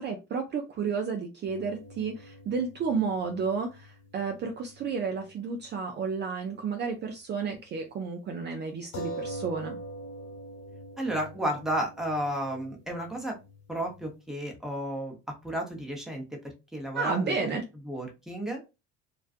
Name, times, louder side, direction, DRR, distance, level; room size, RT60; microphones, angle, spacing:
voice 1, 0.0-9.8 16.9-17.6, right 5 dB, 35° right, 0.4 m, -31 dB
sound 1, 1.5-5.3 5.6-5.7 8.9-14.2, right 1 dB, 65° left, 1.2 m, -44 dB
voice 2, 11.0-13.4 13.7-17.6 17.8-18.6, right 1 dB, ahead, 0.8 m, -33 dB
2.4 x 2.2 x 2.4 m
supercardioid pair, 95°, 29 cm